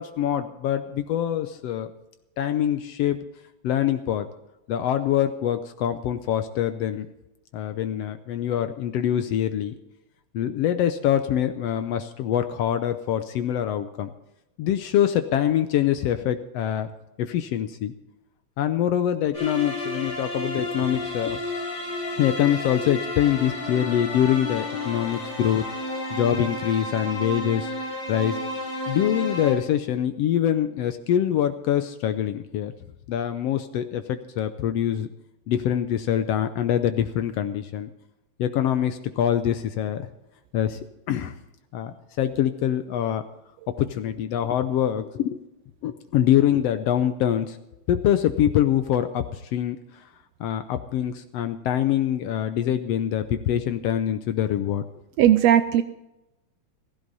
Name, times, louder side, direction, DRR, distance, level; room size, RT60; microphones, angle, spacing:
voice 1, 0.0-1.9 2.4-3.2 3.6-4.3 4.7-7.1 7.5-9.7 10.3-14.1 14.6-16.9 17.2-17.9 18.6-21.4 22.2-25.7 26.1-27.7 28.1-28.4 28.9-32.7 33.1-35.1 35.5-37.9 38.4-40.1 40.5-40.8 41.1-41.4 41.7-43.2 43.7-45.4 45.8-47.6 47.9-50.0 50.4-54.8, left 10 dB, 75° left, 10 dB, 1.6 m, -24 dB
sound 1, 19.3-29.5, left 2 dB, 35° left, 7.3 m, -31 dB
voice 2, 55.2-55.8, right 11 dB, 75° right, 11 dB, 1.5 m, -17 dB
15.5 x 15.5 x 4.1 m, 0.92 s
omnidirectional pair, 3.3 m